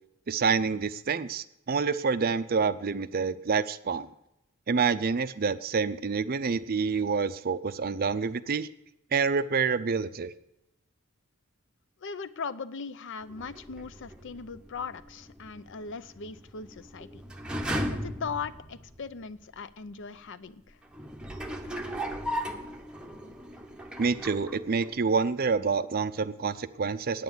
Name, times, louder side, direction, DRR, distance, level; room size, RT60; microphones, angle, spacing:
voice 1, 0.3-4.1 4.7-8.7 9.1-10.3 24.0-27.2, right 5 dB, 40° right, 14 dB, 0.5 m, -27 dB
voice 2, 12.0-17.2 18.0-20.8, left 5 dB, 55° left, 15 dB, 0.6 m, -39 dB
sound 1, 13.2-19.3 19.9-20.0 20.8-25.1 25.4-25.5, equal, 5° right, 0.8 m, -37 dB
9.3 x 9.2 x 7.8 m, 0.83 s
head